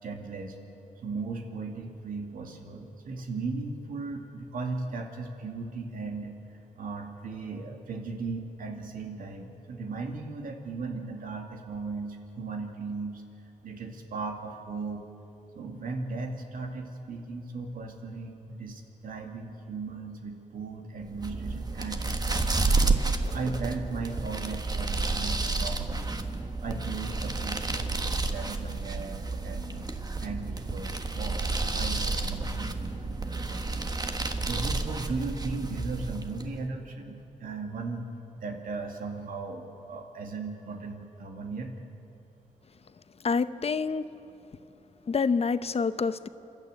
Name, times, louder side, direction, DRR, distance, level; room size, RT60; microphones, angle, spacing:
voice 1, 0.0-0.6 1.0-13.2 13.6-15.0 15.5-22.7 23.2-26.1 26.6-29.9 30.2-34.2 34.4-38.1 38.3-41.7, right 3 dB, 90° right, 3 dB, 2.3 m, -37 dB
sound 1, 21.1-36.6, right 3 dB, 30° right, 1.4 m, -30 dB
voice 2, 43.2-44.1 45.1-46.3, left 5 dB, 45° left, 12 dB, 0.8 m, -27 dB
27.5 x 12.0 x 9.1 m, 2.9 s
cardioid pair, 90°, 14 cm